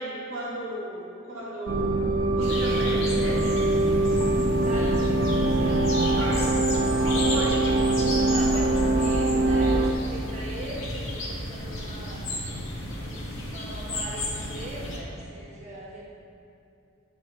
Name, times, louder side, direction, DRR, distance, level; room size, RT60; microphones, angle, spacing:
voice 1, 0.0-1.9 2.3-3.5 6.1-6.4 7.0-7.6, right 1 dB, 90° right, -7 dB, 1.5 m, -35 dB
sound 1, 1.7-9.9, right 2 dB, 65° right, 0.6 m, -23 dB
sound 2, 2.4-15.0, left 1 dB, 80° left, 1.7 m, -33 dB
voice 2, 4.6-5.1 5.4-6.9 8.3-12.2 13.0-16.1, right 1 dB, 35° right, -5 dB, 1.7 m, -41 dB
10.0 x 4.8 x 4.1 m, 2.8 s
head